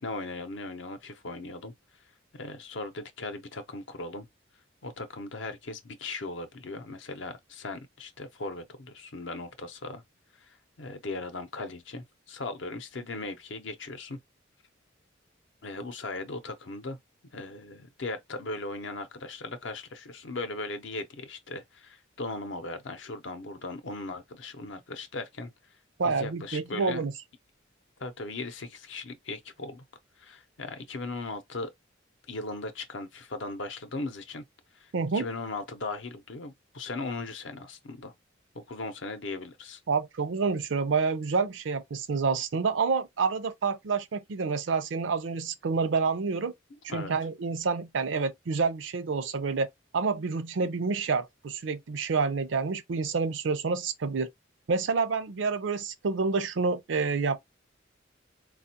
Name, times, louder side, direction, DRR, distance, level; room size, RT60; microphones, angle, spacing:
voice 1, 0.0-1.7 2.3-4.3 4.8-10.0 10.5-14.2 15.6-17.0 17.3-25.5 26.0-27.0 28.0-29.8 30.2-31.7 32.3-34.4 34.7-38.1 38.5-39.8 46.9-47.1, left 3 dB, 65° left, 0.7 m, -38 dB
voice 2, 26.0-27.1 34.9-35.3 39.9-46.5 46.8-49.7 49.9-54.3 54.7-57.4, right 4 dB, 70° right, 0.5 m, -28 dB
4.2 x 2.3 x 2.7 m
head